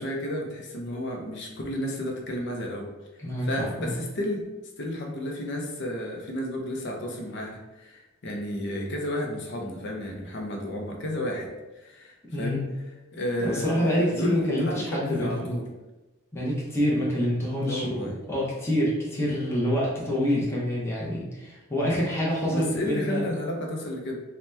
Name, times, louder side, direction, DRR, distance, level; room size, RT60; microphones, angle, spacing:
voice 1, 0.0-2.9 3.4-4.4 4.8-12.6 13.1-15.7 17.6-18.1 22.5-24.2, left 1 dB, 55° left, 1 dB, 0.5 m, -32 dB
voice 2, 3.2-3.9 12.3-12.6 13.4-15.5 16.3-23.2, equal, 15° left, -6 dB, 0.6 m, -27 dB
2.8 x 2.1 x 3.2 m, 1.1 s
head